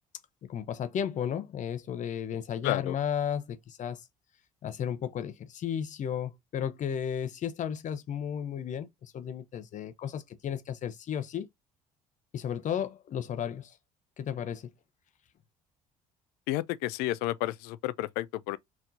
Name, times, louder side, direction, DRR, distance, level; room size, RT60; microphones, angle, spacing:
voice 1, 0.5-4.0 4.6-11.5 12.3-13.7 14.2-14.7, left 8 dB, 45° left, 0.9 m, -34 dB
voice 2, 2.6-2.9 16.5-18.6, left 16 dB, 60° left, 0.5 m, -31 dB
4.4 x 3.6 x 2.7 m
figure-of-eight pair, 55°, 18 cm